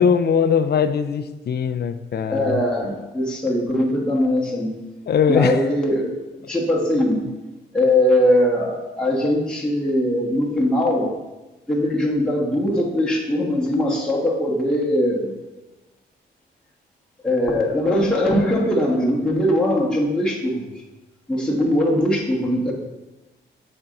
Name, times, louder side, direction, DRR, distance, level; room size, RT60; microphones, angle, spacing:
voice 1, 0.0-2.6 5.1-5.6, left 6 dB, 55° left, 10 dB, 0.5 m, -20 dB
voice 2, 2.3-4.7 5.3-7.2 7.7-11.1 11.7-15.4 17.2-20.8 21.3-22.7, left 1 dB, 5° left, -4 dB, 1.4 m, -21 dB
6.9 x 4.4 x 3.8 m, 1.1 s
cardioid pair, 80°, 20 cm